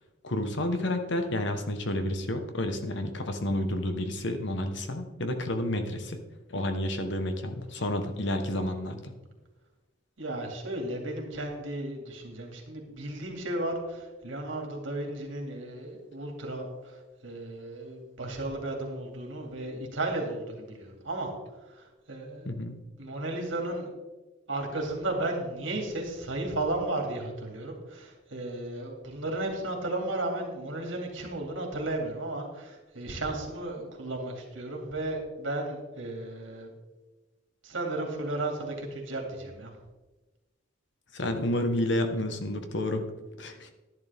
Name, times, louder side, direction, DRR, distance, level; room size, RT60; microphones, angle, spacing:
voice 1, 0.2-6.2 6.5-9.1 22.4-22.8 41.1-43.0 43.4-43.7, left 1 dB, 65° left, 7 dB, 1.2 m, -30 dB
voice 2, 10.2-17.0 17.2-21.3 21.7-22.5 23.0-23.9 24.5-36.7 37.6-39.7, right 2 dB, 80° right, 1 dB, 2.6 m, -34 dB
11.0 x 11.0 x 3.6 m, 1.2 s
head